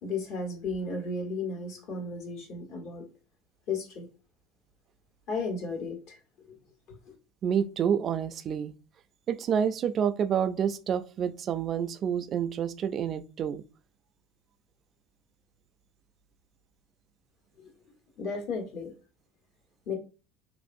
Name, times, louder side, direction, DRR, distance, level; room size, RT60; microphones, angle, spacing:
voice 1, 0.0-3.0 3.7-4.1 5.3-6.2 7.0-7.1 18.2-18.9 19.8-19.9, left 3 dB, 65° left, 1.3 m, -34 dB
voice 2, 7.4-8.7 9.3-13.6, right 8 dB, 40° right, 0.3 m, -28 dB
2.9 x 2.6 x 2.5 m
supercardioid pair, 105°, 0 cm